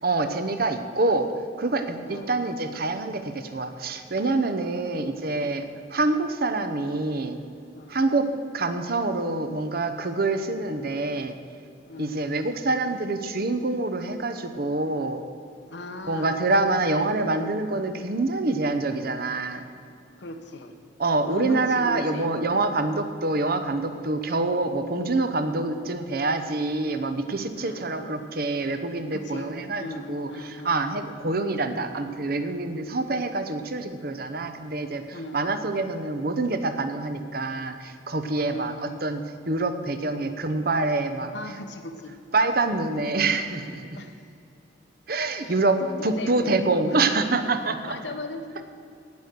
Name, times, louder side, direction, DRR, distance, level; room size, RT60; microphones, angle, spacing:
voice 1, 0.0-1.3 1.6-7.4 7.9-8.3 8.5-11.4 12.0-15.2 16.1-19.6 21.0-39.2 39.5-41.3 42.3-44.0 45.1-48.0, right 2 dB, 50° right, 8 dB, 0.9 m, -26 dB
voice 2, 11.9-12.2 15.7-16.4 20.2-20.7 21.3-22.7 27.5-27.9 29.1-29.5 29.8-31.0 35.1-35.4 38.5-39.0 41.3-42.1 43.9-44.1 45.4-45.6 46.0-47.0 47.9-48.6, left 2 dB, 70° left, 6 dB, 1.1 m, -37 dB
18.0 x 6.2 x 6.7 m, 2.5 s
head